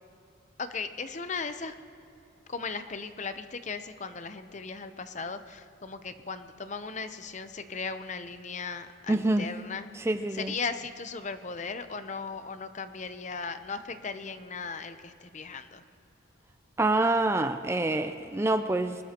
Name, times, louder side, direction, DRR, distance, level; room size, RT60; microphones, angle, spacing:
voice 1, 0.6-1.7 2.5-9.9 10.3-15.8, left 4 dB, 35° left, 10 dB, 0.7 m, -37 dB
voice 2, 9.1-9.5 10.0-10.5 16.8-19.0, right 2 dB, 15° right, 9 dB, 0.3 m, -26 dB
24.0 x 20.0 x 2.9 m, 2.7 s
head